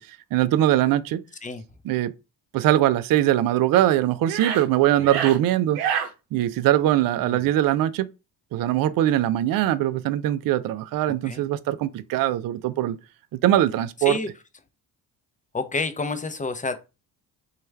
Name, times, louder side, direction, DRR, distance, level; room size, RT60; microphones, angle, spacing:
voice 1, 0.3-1.2 1.9-2.1 2.5-5.8 6.3-8.1 8.5-13.0 13.3-14.2, right 13 dB, 50° right, 0.4 m, -21 dB
sound 1, 3.7-3.8 4.2-4.7 5.0-5.4 5.8-6.1, right 8 dB, 85° right, 0.7 m, -27 dB
voice 2, 5.0-5.3 7.2-7.5 11.1-11.5 14.0-14.3 15.5-16.8, left 3 dB, 15° left, 0.6 m, -30 dB
3.1 x 2.3 x 3.2 m
hypercardioid pair, 55°, 47 cm